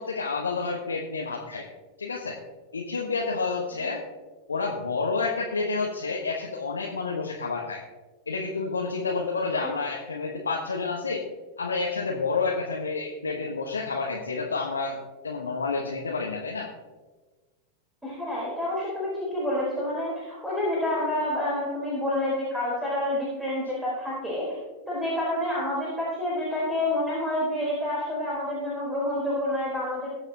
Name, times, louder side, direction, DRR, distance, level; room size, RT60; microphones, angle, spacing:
voice 1, 0.0-1.6 2.0-2.4 2.7-4.0 4.5-7.8 8.3-11.2 11.6-15.0 15.2-16.7, left 4 dB, 75° left, -1 dB, 1.2 m, -29 dB
voice 2, 18.0-24.6 24.9-30.1, left 1 dB, 5° right, -6 dB, 3.9 m, -28 dB
21.0 x 7.2 x 2.8 m, 1.3 s
figure-of-eight pair, 90°, 0 cm